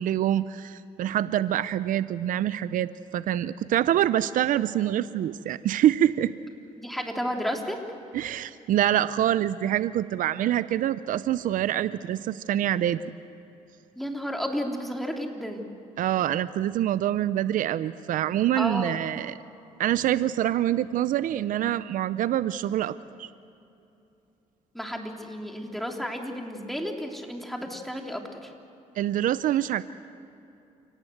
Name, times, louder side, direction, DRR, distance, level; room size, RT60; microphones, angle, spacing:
voice 1, 0.0-6.3 8.1-13.1 16.0-19.3 19.8-23.3 29.0-29.8, right 12 dB, 70° right, 15 dB, 0.6 m, -25 dB
voice 2, 6.8-7.8 14.0-15.6 18.6-19.0 24.7-28.5, equal, ahead, 2 dB, 3.5 m, -32 dB
29.0 x 18.0 x 8.0 m, 2.8 s
cardioid pair, 75°, 14 cm